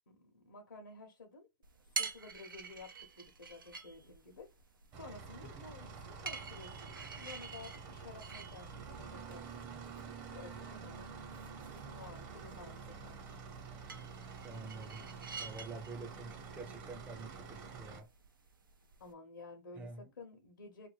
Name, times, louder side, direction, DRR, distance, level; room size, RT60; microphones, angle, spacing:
voice 1, 0.1-1.5 1.9-4.5 5.0-9.6 10.3-11.2 11.7-13.4 19.0-20.9, left 3 dB, 85° left, 0.8 m, -53 dB
sound 1, 1.6-19.1, right 5 dB, 90° right, 0.6 m, -49 dB
sound 2, 4.9-18.0, right 5 dB, 40° right, 1.0 m, -48 dB
voice 2, 14.4-15.1 15.4-18.1 19.8-20.1, right 3 dB, 15° right, 0.5 m, -48 dB
2.5 x 2.2 x 3.2 m
hypercardioid pair, 110°, 11 cm